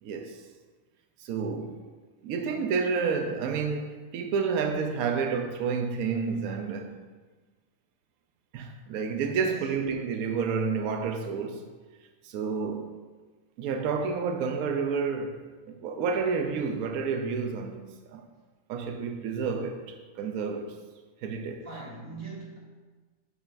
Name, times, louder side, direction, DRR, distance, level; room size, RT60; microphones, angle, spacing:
voice 1, 0.0-0.4 1.2-1.8 2.2-6.9 8.5-11.7 12.2-13.0 13.6-17.8 18.1-18.2 18.7-20.7 21.2-21.7, right 5 dB, 85° right, 5 dB, 1.1 m, -30 dB
voice 2, 21.6-22.6, right 3 dB, 60° right, -7 dB, 2.4 m, -41 dB
8.6 x 5.6 x 2.6 m, 1.3 s
omnidirectional pair, 1.5 m